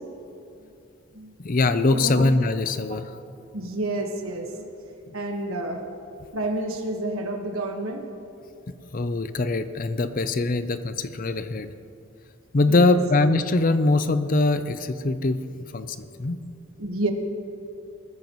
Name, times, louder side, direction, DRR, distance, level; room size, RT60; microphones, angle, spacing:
voice 1, 1.4-3.0 8.9-11.7 12.5-15.4 15.7-16.4, left 2 dB, 40° left, 12 dB, 0.5 m, -22 dB
voice 2, 1.9-2.3 3.5-4.7 5.1-5.8 6.3-8.0 12.7-13.0 16.8-17.1, right 1 dB, 75° right, 3 dB, 1.5 m, -29 dB
20.0 x 14.0 x 3.1 m, 2.6 s
head